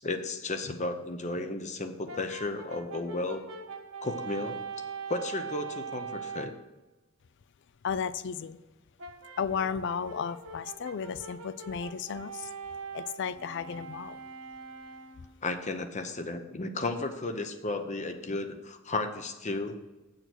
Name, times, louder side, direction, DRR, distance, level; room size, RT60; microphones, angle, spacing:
voice 1, 0.0-3.4 4.0-4.6 5.1-6.5 15.4-19.8, left 2 dB, 35° left, 8 dB, 0.8 m, -34 dB
Brass instrument, 2.1-6.6 9.0-15.3, right 5 dB, 80° right, 1.4 m, -42 dB
voice 2, 7.8-8.6 9.4-12.5 12.9-14.2 15.2-15.3, left 6 dB, 55° left, 17 dB, 0.4 m, -34 dB
8.1 x 6.6 x 6.1 m, 1.1 s
head